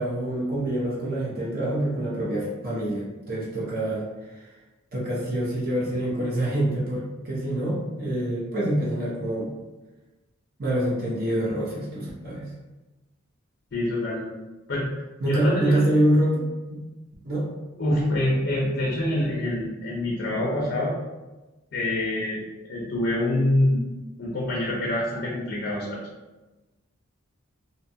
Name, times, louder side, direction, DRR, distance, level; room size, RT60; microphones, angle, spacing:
voice 1, 0.0-4.5 4.9-9.5 10.6-12.5 15.2-16.8 17.2-17.5, right 1 dB, 45° right, -6 dB, 0.6 m, -26 dB
voice 2, 13.7-14.3 14.7-14.9 15.2-15.9 17.8-20.9 21.7-22.4 22.7-23.9 24.2-26.0, left 1 dB, 55° left, -5 dB, 0.5 m, -25 dB
2.6 x 2.2 x 2.6 m, 1.1 s
head